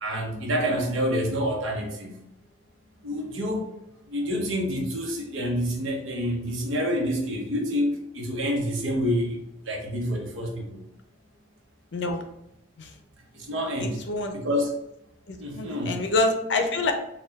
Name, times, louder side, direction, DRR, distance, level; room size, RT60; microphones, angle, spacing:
voice 1, 0.0-2.2 3.0-3.7 4.1-9.4 9.7-10.8 13.5-14.0 14.3-14.7 15.4-16.0, equal, 85° right, 0 dB, 1.0 m, -27 dB
voice 2, 11.9-12.2 12.8-12.9 13.8-14.3 15.3-16.9, left 2 dB, 60° left, 5 dB, 0.5 m, -26 dB
4.3 x 2.3 x 3.5 m, 0.81 s
head